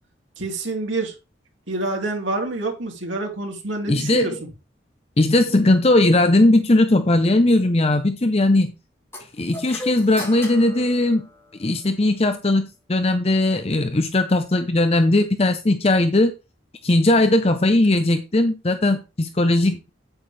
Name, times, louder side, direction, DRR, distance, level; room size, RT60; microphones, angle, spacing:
voice 1, 0.4-1.1 1.7-4.5, right 2 dB, 85° right, 2.9 m, -27 dB
voice 2, 3.9-4.4 5.2-8.7 9.4-11.2 11.6-16.3 16.8-19.9, left 2 dB, 30° left, 0.7 m, -18 dB
sound 1, 9.1-11.8, left 1 dB, 15° left, 6.4 m, -36 dB
8.9 x 8.5 x 3.4 m
head